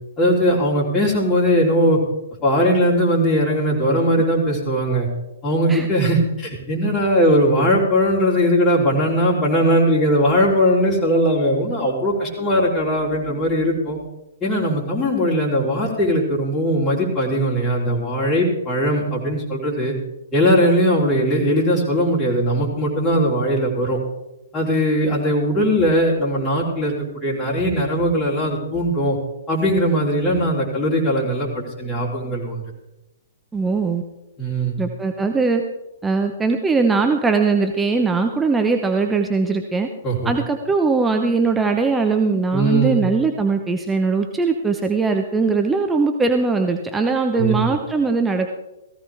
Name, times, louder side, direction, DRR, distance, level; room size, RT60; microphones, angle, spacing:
voice 1, 0.2-2.0 2.4-5.1 5.4-14.0 14.4-19.9 20.3-24.0 24.5-29.2 29.5-32.6 34.4-34.8 40.0-40.3 42.5-43.0 47.3-47.6, equal, 15° left, -6 dB, 3.7 m, -19 dB
voice 2, 33.5-34.0 34.8-35.6 36.0-39.9 40.2-48.5, right 4 dB, 10° right, 4 dB, 1.0 m, -20 dB
17.5 x 15.5 x 3.6 m, 0.97 s
figure-of-eight pair, 115°, 0 cm